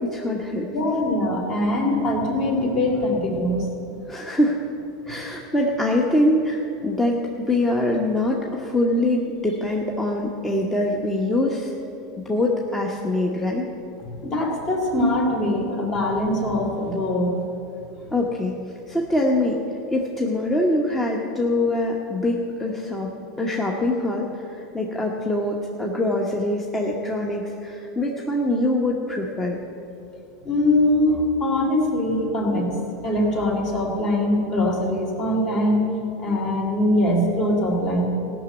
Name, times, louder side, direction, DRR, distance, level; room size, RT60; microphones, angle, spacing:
voice 1, 0.1-0.7 4.1-4.6 5.1-11.7 12.2-13.7 18.1-18.6 18.9-19.6 19.9-23.1 23.4-29.6, left 1 dB, 10° left, -1 dB, 1.1 m, -23 dB
voice 2, 0.7-3.7 14.2-17.4 18.0-18.1 30.4-32.7 33.0-35.9 36.2-38.1, left 1 dB, 40° left, 0 dB, 3.1 m, -22 dB
15.5 x 6.1 x 8.0 m, 2.8 s
supercardioid pair, 115°, 2 cm